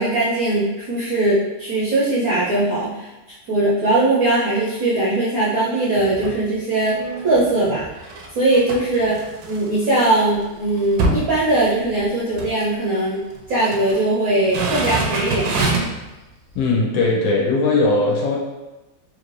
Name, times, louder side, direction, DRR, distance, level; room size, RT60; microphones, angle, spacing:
voice 1, 0.0-3.1 3.5-7.0 7.2-7.8 8.3-13.2 13.5-15.7, right 2 dB, 65° right, -8 dB, 0.9 m, -20 dB
sound 1, 6.0-6.4 6.9-10.0 10.3-10.4 10.7-12.1 12.3-12.6 13.4-14.0 14.4-16.0 16.5-16.6, right 2 dB, 80° right, 1.5 m, -26 dB
voice 2, 16.5-18.4, left 3 dB, 70° left, -3 dB, 1.5 m, -19 dB
4.0 x 2.6 x 3.1 m, 1.1 s
omnidirectional pair, 2.3 m